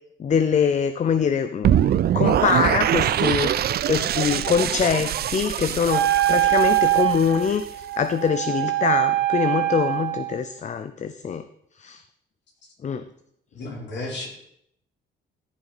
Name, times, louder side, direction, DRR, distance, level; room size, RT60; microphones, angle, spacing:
voice 1, 0.2-3.6 3.9-7.6 8.0-11.4 11.8-12.0 12.8-13.1, left 7 dB, 35° left, 11 dB, 0.5 m, -24 dB
sound 1, 1.6-7.7, right 11 dB, 55° right, 0.4 m, -23 dB
Wind instrument woodwind instrument, 5.9-10.4, right 14 dB, 75° right, 1.7 m, -23 dB
voice 2, 13.5-14.3, left 2 dB, 65° left, -1 dB, 3.6 m, -33 dB
15.0 x 5.7 x 4.3 m, 0.74 s
cardioid pair, 90°, 20 cm